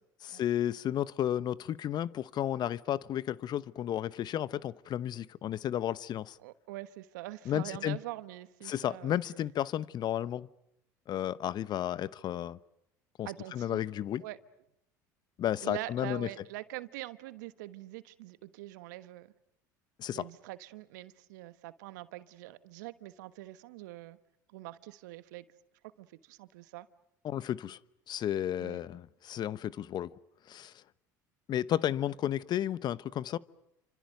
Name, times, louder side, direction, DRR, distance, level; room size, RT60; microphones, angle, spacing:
voice 1, 0.2-6.4 7.5-8.0 8.6-10.5 11.1-12.6 13.2-14.2 15.4-16.3 20.0-20.2 27.2-27.8 28.1-30.1 30.5-30.7 31.5-33.4, left 11 dB, 45° left, 1.0 m, -33 dB
voice 2, 6.4-9.1 13.2-13.8 14.2-14.4 15.6-19.3 20.1-24.2 24.5-25.4 26.0-26.9 28.6-28.8, right 17 dB, 75° right, 1.3 m, -44 dB
29.5 x 26.0 x 6.7 m
hypercardioid pair, 75°, 10 cm